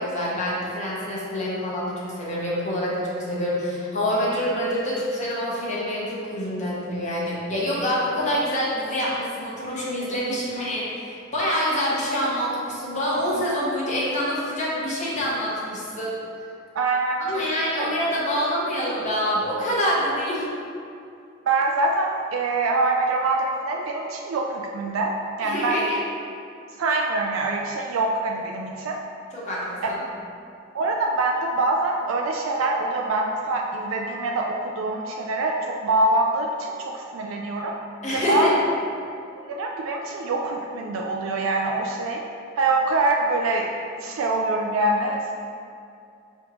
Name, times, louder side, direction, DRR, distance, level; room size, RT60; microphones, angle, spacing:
voice 1, 0.0-16.2 17.2-20.4 25.4-26.0 29.3-30.0 38.0-38.5, equal, 35° left, -6 dB, 0.9 m, -26 dB
voice 2, 16.7-17.2 17.6-17.9 21.5-25.1 25.4-25.8 26.8-29.0 30.7-37.7 38.1-38.5 39.5-42.2 42.6-43.7 44.0-45.3, right 2 dB, 80° right, 0 dB, 0.3 m, -24 dB
4.9 x 3.5 x 2.9 m, 2.5 s
head